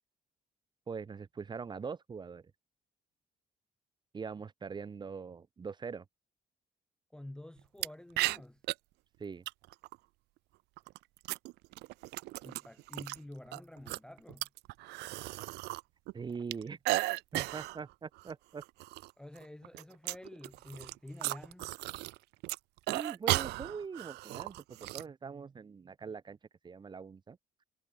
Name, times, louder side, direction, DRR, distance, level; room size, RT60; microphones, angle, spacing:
voice 1, 0.9-2.5 4.1-6.0 9.2-9.4 16.1-16.8 17.3-18.6 22.9-26.4 26.6-27.4, right 5 dB, 25° right, 0.8 m, -42 dB
voice 2, 7.1-8.6 12.4-14.5 19.2-21.8, left 1 dB, 5° left, 0.5 m, -49 dB
sound 1, 7.8-7.9 8.2-8.7 9.5-9.9 10.8-13.2 13.5-15.8 16.1-17.8 18.2-18.3 18.6-19.1 19.4-22.2 22.4-25.0, right 21 dB, 80° right, 0.4 m, -35 dB
cardioid pair, 110°, 17 cm